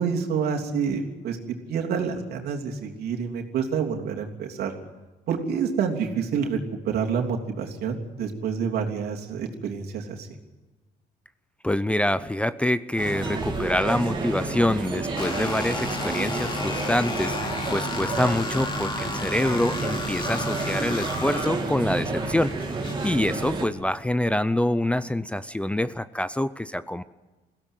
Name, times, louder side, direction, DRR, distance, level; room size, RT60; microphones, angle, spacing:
voice 1, 0.0-1.4 1.7-4.7 5.3-6.6 6.8-10.3, right 6 dB, 70° right, 1 dB, 3.2 m, -28 dB
voice 2, 11.6-22.7 23.0-27.0, left 1 dB, 5° left, 14 dB, 0.6 m, -26 dB
sound 1, 13.0-23.7, right 3 dB, 30° right, 3.3 m, -30 dB
sound 2, 15.2-23.1, left 3 dB, 30° left, 3.4 m, -33 dB
22.0 x 16.5 x 9.1 m, 1.2 s
cardioid pair, 110°, 17 cm